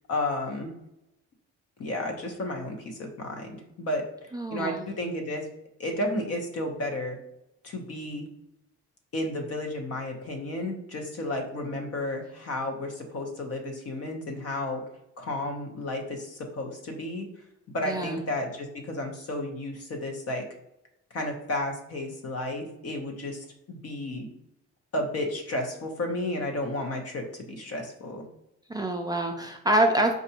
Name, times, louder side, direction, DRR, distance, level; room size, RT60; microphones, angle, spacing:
voice 1, 0.1-0.7 1.8-5.4 5.8-7.2 7.6-8.3 9.1-14.8 15.2-17.3 17.7-20.5 21.1-24.3 24.9-28.2, left 1 dB, 55° left, 3 dB, 0.9 m, -32 dB
voice 2, 4.3-4.8 17.9-18.2 28.7-30.1, right 1 dB, 15° right, 2 dB, 0.4 m, -26 dB
4.5 x 2.5 x 2.8 m, 0.84 s
cardioid pair, 90°, 30 cm